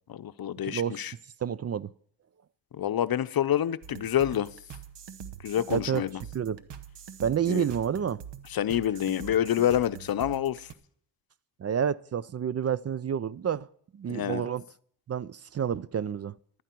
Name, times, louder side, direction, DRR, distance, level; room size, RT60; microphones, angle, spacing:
voice 1, 0.1-1.1 2.7-4.5 5.4-6.2 7.5-7.7 8.5-10.7 14.1-14.5, left 10 dB, 60° left, 0.7 m, -27 dB
voice 2, 0.6-1.0 1.4-1.9 5.7-6.1 6.3-6.7 7.2-8.2 11.6-13.7 13.9-14.6 15.1-16.3, right 8 dB, 40° right, 0.4 m, -29 dB
sound 1, 3.8-10.7, right 8 dB, 85° right, 1.0 m, -44 dB
15.0 x 12.0 x 4.5 m
cardioid pair, 70°, 41 cm